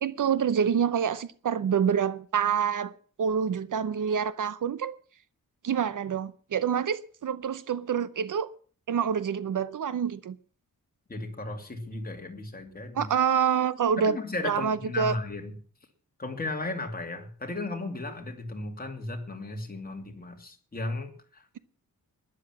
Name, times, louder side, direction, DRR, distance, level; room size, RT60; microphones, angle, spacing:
voice 1, 0.0-2.9 3.2-5.0 5.6-8.5 8.9-10.4 13.0-14.2 14.4-15.1, right 7 dB, 60° right, 0.8 m, -27 dB
voice 2, 11.1-13.1 14.0-15.6 16.2-21.6, left 2 dB, 25° left, 2.6 m, -35 dB
12.5 x 11.0 x 7.5 m
wide cardioid pair, 160°, 35 cm